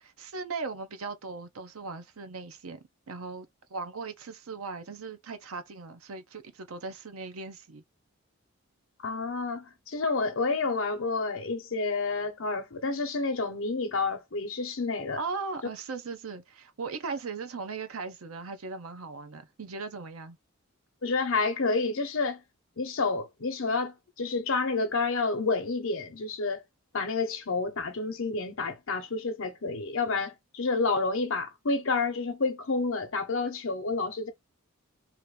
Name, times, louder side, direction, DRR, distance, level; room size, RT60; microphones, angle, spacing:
voice 1, 0.2-7.8 15.2-20.4, right 4 dB, 80° right, 0.7 m, -38 dB
voice 2, 9.0-15.2 21.0-22.4 22.8-26.6 26.9-34.3, left 3 dB, 65° left, 0.8 m, -29 dB
2.9 x 2.5 x 3.3 m
head